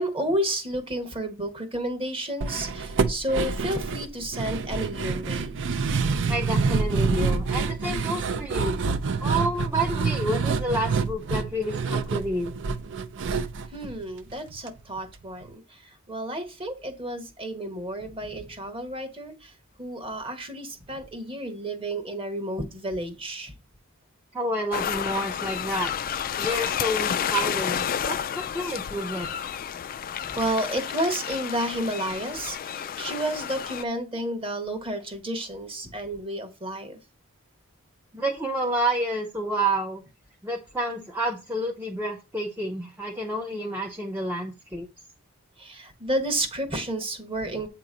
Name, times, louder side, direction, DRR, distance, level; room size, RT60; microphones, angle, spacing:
voice 1, 0.0-5.6 13.7-19.5 19.8-23.5 30.3-37.0 45.6-47.7, right 1 dB, 25° right, 6 dB, 1.1 m, -31 dB
sound 1, 2.4-14.7 15.0-15.1 15.4-15.5, right 4 dB, 60° right, 0.5 m, -27 dB
voice 2, 6.3-8.8 9.2-12.5 24.3-25.9 26.4-29.3 38.1-40.0 40.4-44.9, right 1 dB, 10° right, 0 dB, 0.6 m, -29 dB
sound 2, 24.7-33.8, left 8 dB, 40° left, 0.3 m, -30 dB
8.0 x 2.9 x 5.0 m, 0.29 s
head